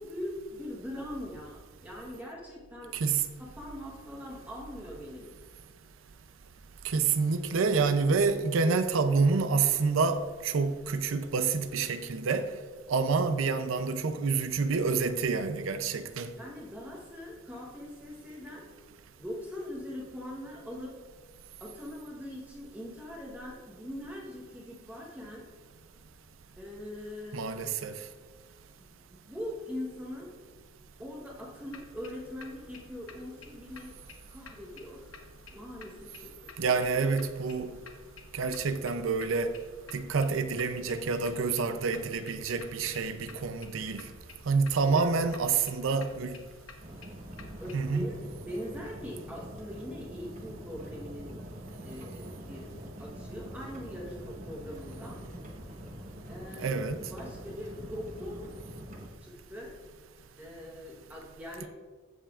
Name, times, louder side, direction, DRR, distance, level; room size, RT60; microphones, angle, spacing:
voice 1, 0.0-2.9 3.4-5.3 16.3-18.7 19.2-20.9 21.6-25.5 26.6-27.4 28.8-30.3 31.0-34.0 34.3-35.0 35.5-36.3 44.8-45.3 47.6-51.4 51.8-52.7 53.0-55.2 56.3-56.7 57.1-58.5 59.2-59.7 60.4-61.7, left 1 dB, 10° right, 1.0 m, -42 dB
voice 2, 2.9-3.2 6.8-12.5 12.9-16.3 27.3-28.0 36.6-37.7 38.3-39.5 39.9-44.0 44.5-46.4 47.7-48.1 56.6-57.0 61.6-61.7, right 4 dB, 80° right, 0.5 m, -28 dB
sound 1, 31.7-47.9, left 4 dB, 80° left, 0.9 m, -52 dB
sound 2, 46.8-59.1, equal, 40° right, 1.1 m, -44 dB
15.0 x 5.7 x 2.4 m
head